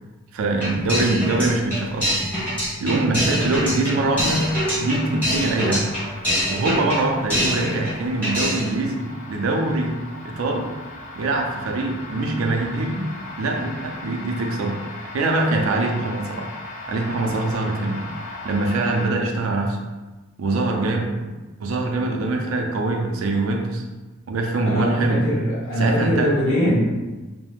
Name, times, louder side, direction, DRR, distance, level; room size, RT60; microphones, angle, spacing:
voice 1, 0.3-2.1 2.8-5.9 6.5-10.0 10.2-10.7 11.2-13.0 13.4-14.8 15.1-16.5 16.9-18.0 18.4-19.8 20.4-21.1 21.6-23.8 24.3-25.2 25.8-26.3 26.6-26.8, right 2 dB, 80° right, 1 dB, 0.4 m, -23 dB
sound 1, 0.6-8.0 8.2-8.8, equal, 10° left, 1.3 m, -25 dB
sound 2, 4.2-19.1, left 2 dB, 35° left, 0.3 m, -38 dB
voice 2, 24.6-26.8, equal, 80° left, -8 dB, 1.2 m, -21 dB
3.2 x 2.0 x 2.3 m, 1.2 s
head